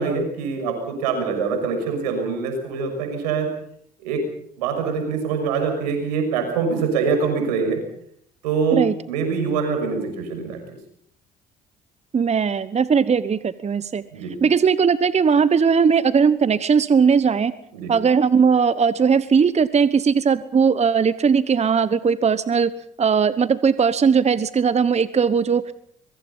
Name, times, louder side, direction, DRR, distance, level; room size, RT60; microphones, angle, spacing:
voice 1, 0.0-3.5 4.0-4.2 4.6-7.8 8.4-10.8 14.1-14.4 17.7-17.9, right 5 dB, 90° right, 6 dB, 6.3 m, -24 dB
voice 2, 12.1-14.0 14.4-17.5 17.9-22.7 23.0-25.7, right 6 dB, 35° right, 15 dB, 1.1 m, -18 dB
24.5 x 22.5 x 5.6 m, 0.66 s
hypercardioid pair, 60°, 20 cm